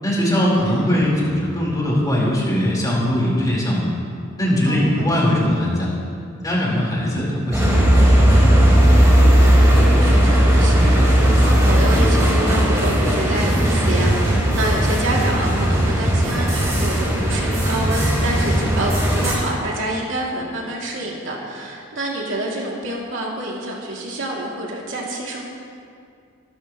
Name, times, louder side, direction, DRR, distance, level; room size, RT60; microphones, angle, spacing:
voice 1, 0.0-3.9 4.4-5.9 6.4-8.0, equal, 20° left, -6 dB, 4.6 m, -20 dB
voice 2, 0.6-1.0 4.7-5.2 9.1-25.5, right 1 dB, 65° right, -3 dB, 3.0 m, -28 dB
sound 1, 7.5-19.4, equal, 15° right, 3.8 m, -16 dB
24.0 x 13.0 x 3.2 m, 2.3 s
head